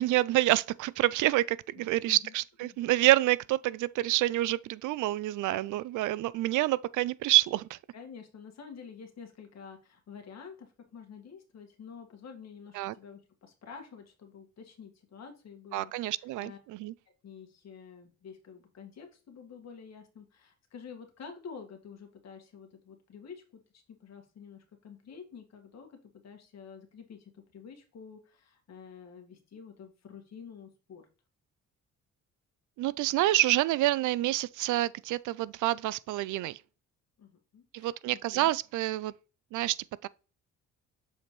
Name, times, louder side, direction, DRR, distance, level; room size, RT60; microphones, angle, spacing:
voice 1, 0.0-7.8 12.7-12.9 15.7-16.9 32.8-36.6 37.7-39.1 39.5-39.8 40.0-40.1, right 16 dB, 80° right, 0.4 m, -27 dB
voice 2, 1.8-2.3 2.6-2.8 7.9-16.1 16.4-16.6 17.2-23.4 23.7-26.0 26.2-31.0 37.2-38.5, left 6 dB, 60° left, 1.9 m, -49 dB
7.1 x 4.2 x 3.1 m
cardioid pair, 90°, 30 cm